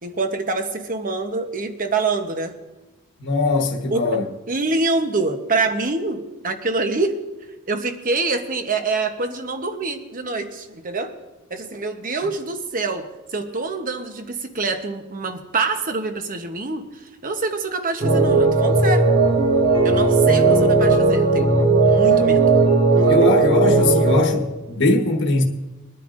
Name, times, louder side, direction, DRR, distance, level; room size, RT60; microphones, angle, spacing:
voice 1, 0.0-2.5 3.9-4.1 4.5-7.2 7.7-11.1 11.5-19.1 19.8-21.5 21.8-22.5 22.9-23.3, right 3 dB, 40° right, 1.0 m, -25 dB
voice 2, 3.2-4.3 23.1-25.4, left 2 dB, 55° left, 1.3 m, -21 dB
sound 1, 18.0-24.2, right 3 dB, 60° right, 2.8 m, -16 dB
23.0 x 10.0 x 2.6 m
head